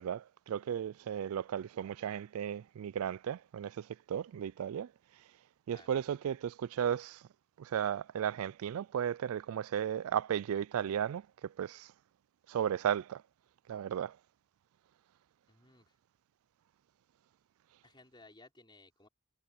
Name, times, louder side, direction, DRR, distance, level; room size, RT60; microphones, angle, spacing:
voice 1, 0.0-4.9 5.7-7.2 7.6-11.9 12.5-13.2 13.7-14.2, right 9 dB, 70° right, 0.3 m, -35 dB
voice 2, 5.7-6.0 15.5-15.9 17.8-19.1, left 2 dB, 20° left, 5.0 m, -59 dB
head